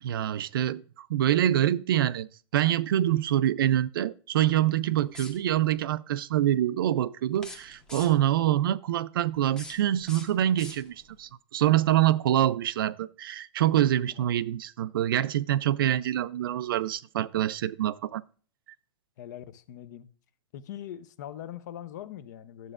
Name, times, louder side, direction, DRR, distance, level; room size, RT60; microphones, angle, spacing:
voice 1, 0.0-18.2, right 12 dB, 50° right, 0.4 m, -25 dB
sound 1, 5.0-5.7 7.3-8.4 9.3-11.2, left 2 dB, 5° left, 0.7 m, -46 dB
voice 2, 13.8-14.3 19.2-20.1 20.5-22.7, left 11 dB, 40° left, 0.5 m, -42 dB
12.0 x 7.8 x 2.4 m
hypercardioid pair, 170°, 15 cm